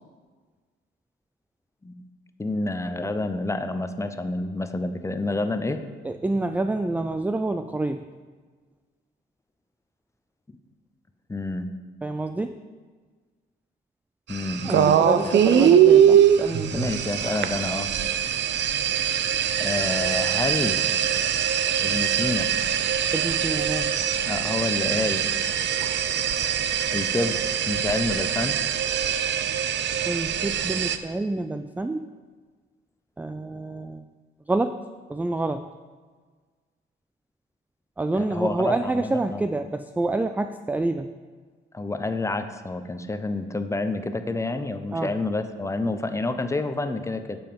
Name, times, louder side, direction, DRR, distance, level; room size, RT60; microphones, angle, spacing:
voice 1, 2.4-5.8 10.5-10.6 11.3-11.7 14.3-15.4 16.7-17.9 19.6-20.8 21.8-22.5 24.2-25.2 26.9-27.4 27.7-28.6 38.2-39.4 41.7-47.4, left 2 dB, 15° left, 9 dB, 0.7 m, -28 dB
voice 2, 6.0-8.0 12.0-12.6 14.6-16.9 23.1-24.0 30.0-32.1 33.2-34.0 34.5-34.7 35.1-35.7 38.0-41.1 44.9-45.1, right 2 dB, 10° right, 9 dB, 0.3 m, -27 dB
sound 1, 14.3-31.0, right 9 dB, 65° right, 0.6 m, -22 dB
8.9 x 7.2 x 5.2 m, 1.5 s
cardioid pair, 90°, 20 cm